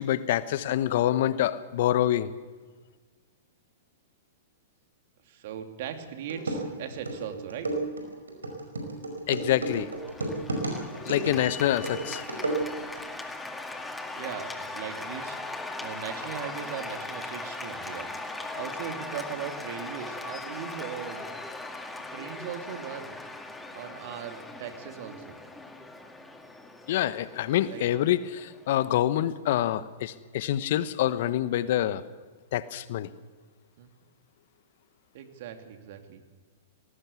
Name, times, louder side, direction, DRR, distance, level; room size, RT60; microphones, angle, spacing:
voice 1, 0.0-2.3 9.3-9.9 11.0-12.2 26.9-32.0 32.5-33.1, left 12 dB, 60° left, 15 dB, 1.0 m, -26 dB
voice 2, 5.3-7.7 14.2-18.1 18.5-21.3 22.1-23.2 23.7-25.4 27.7-27.8 33.8-33.9 35.1-36.2, right 9 dB, 55° right, 6 dB, 2.7 m, -39 dB
sound 1, 5.9-6.0 6.3-13.0, right 2 dB, 85° right, 5.2 m, -32 dB
Cheering / Applause, 9.7-29.0, left 2 dB, 10° left, 2.1 m, -39 dB
19.5 x 18.5 x 8.4 m, 1.4 s
hypercardioid pair, 110°, 0 cm